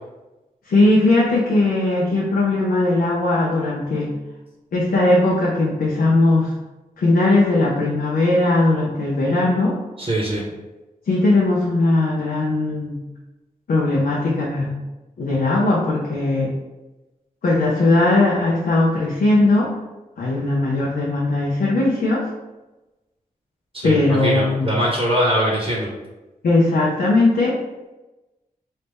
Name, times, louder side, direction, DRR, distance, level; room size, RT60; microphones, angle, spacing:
voice 1, 0.7-4.1 4.7-6.5 7.0-9.8 11.1-13.0 13.7-14.7 15.2-16.5 17.4-19.7 20.2-22.3 23.8-24.8 26.4-27.6, left 2 dB, 85° left, -5 dB, 0.6 m, -19 dB
voice 2, 10.0-10.5 23.7-25.9, equal, 35° right, -3 dB, 0.8 m, -22 dB
3.3 x 2.7 x 3.4 m, 1.1 s
cardioid pair, 60°, 15 cm